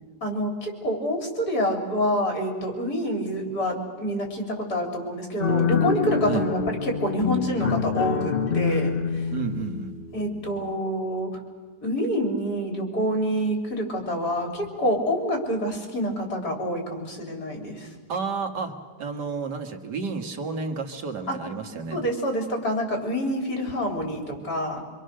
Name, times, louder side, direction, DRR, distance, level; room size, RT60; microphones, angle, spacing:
voice 1, 0.2-9.3 10.1-11.3 11.8-17.9 21.3-21.4 21.9-24.8, equal, 65° left, 1 dB, 4.1 m, -27 dB
sound 1, 5.4-10.7, left 6 dB, 40° left, 0.9 m, -26 dB
voice 2, 9.3-9.9 18.1-18.7 19.0-22.0, right 5 dB, 75° right, 5 dB, 2.1 m, -31 dB
25.0 x 25.0 x 6.5 m, 1.5 s
omnidirectional pair, 1.8 m